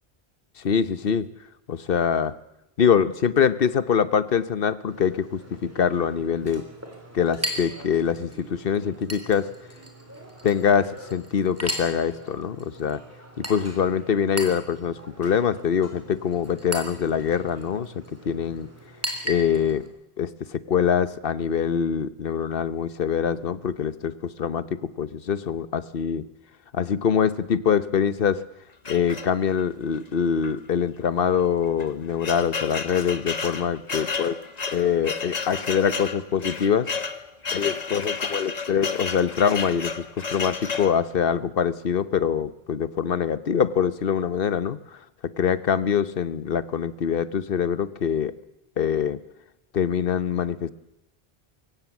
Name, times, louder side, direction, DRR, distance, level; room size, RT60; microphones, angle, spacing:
voice 1, 0.6-1.3 1.7-2.3 2.8-6.6 7.1-9.5 10.4-13.0 13.4-17.9 18.2-18.7 19.2-19.8 20.2-26.3 26.7-28.4 28.9-34.4 34.7-36.9 37.5-44.8 45.4-48.3 48.8-49.2 49.7-50.7, left 7 dB, 60° left, 16 dB, 1.1 m, -24 dB
Chink clink, 4.9-19.9, equal, 15° right, 3.6 m, -38 dB
sound 1, 28.9-29.7 30.4-30.6 30.9-31.0 31.6-41.0, left 5 dB, 40° left, 1.2 m, -31 dB
22.5 x 17.0 x 7.2 m, 0.87 s
omnidirectional pair, 1.1 m